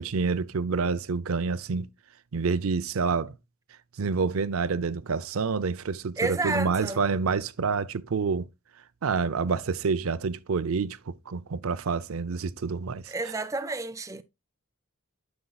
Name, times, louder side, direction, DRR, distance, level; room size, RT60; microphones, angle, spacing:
voice 1, 0.0-1.9 2.3-3.3 4.0-8.5 9.0-13.3, right 5 dB, 80° right, 0.5 m, -28 dB
voice 2, 6.2-7.0 13.1-14.2, right 3 dB, 15° right, 0.4 m, -30 dB
9.5 x 6.9 x 2.3 m
head